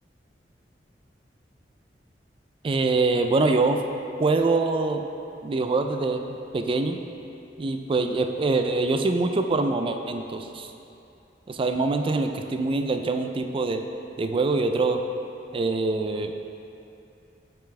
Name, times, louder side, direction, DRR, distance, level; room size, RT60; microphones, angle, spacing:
voice 1, 2.6-3.8 4.2-5.0 5.4-6.2 6.5-7.0 7.6-10.7 11.5-13.8 14.2-15.0 15.5-16.3, right 3 dB, 30° right, 6 dB, 0.3 m, -24 dB
6.8 x 5.8 x 3.3 m, 2.7 s
head